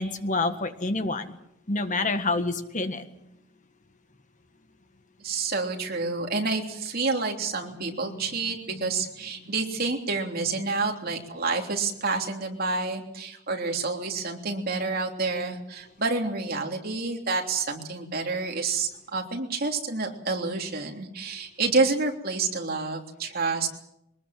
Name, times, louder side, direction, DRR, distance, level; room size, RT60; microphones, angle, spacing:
voice 1, 0.0-1.4 1.7-3.4 8.0-8.3 8.7-8.9, left 3 dB, 40° left, 8 dB, 1.6 m, -28 dB
voice 2, 5.2-23.7, right 3 dB, 50° right, 2 dB, 3.3 m, -28 dB
23.5 x 20.0 x 7.7 m, 0.82 s
head